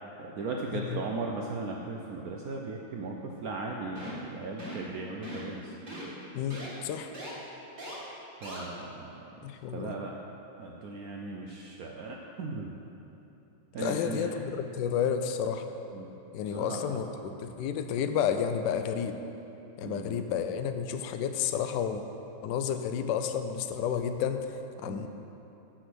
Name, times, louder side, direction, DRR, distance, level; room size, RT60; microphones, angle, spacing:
voice 1, 0.2-5.7 8.4-9.3 9.7-10.1 10.6-12.7 13.7-14.3 15.9-16.1 16.5-16.9 19.8-20.2 24.8-25.1, right 3 dB, 80° right, 0 dB, 0.8 m, -37 dB
sound 1, 4.0-4.3 4.6-4.9 5.2-5.5 5.9-6.0 6.5-6.7 7.1-7.3 7.8-7.9 8.4-8.6, equal, 40° right, 2.4 m, -40 dB
voice 2, 6.3-7.1 9.4-10.0 13.8-15.7 16.3-19.2 19.8-22.0 22.4-25.1, left 8 dB, 75° left, 7 dB, 1.1 m, -31 dB
7.8 x 6.2 x 6.1 m, 3.0 s
omnidirectional pair, 2.2 m